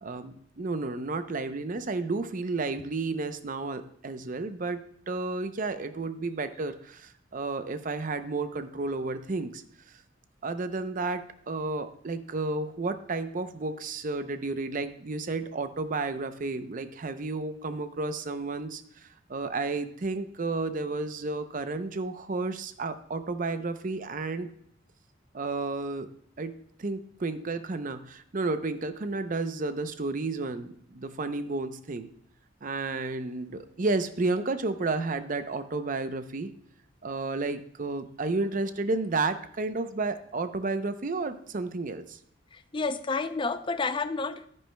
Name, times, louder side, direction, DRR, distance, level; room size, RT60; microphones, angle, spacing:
voice 1, 0.0-4.8 5.1-9.6 10.4-24.5 25.3-26.1 26.4-32.1 32.6-36.5 37.0-42.2, right 3 dB, 45° right, 10 dB, 0.6 m, -32 dB
voice 2, 42.5-44.4, left 4 dB, 25° left, 11 dB, 0.4 m, -30 dB
11.0 x 9.8 x 2.2 m, 0.66 s
head